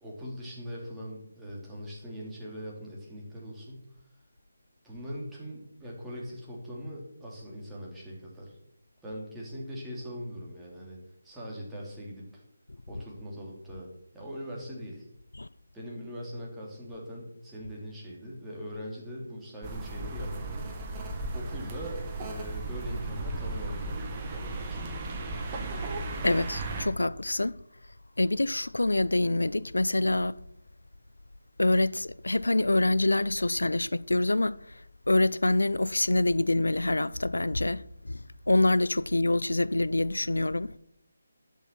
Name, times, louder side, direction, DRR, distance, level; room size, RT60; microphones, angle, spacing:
voice 1, 0.0-3.9 4.8-8.6 9.0-11.0 11.2-12.4 12.9-13.9 14.1-15.0 15.7-20.6 21.3-24.9, equal, 5° right, 2.8 m, -41 dB
sound 1, 19.6-26.9, right 2 dB, 25° right, 1.7 m, -35 dB
voice 2, 26.2-27.6 28.2-30.4 31.6-34.6 35.1-40.7, left 2 dB, 85° left, 0.4 m, -26 dB
11.0 x 6.8 x 5.8 m
figure-of-eight pair, 155°, 0 cm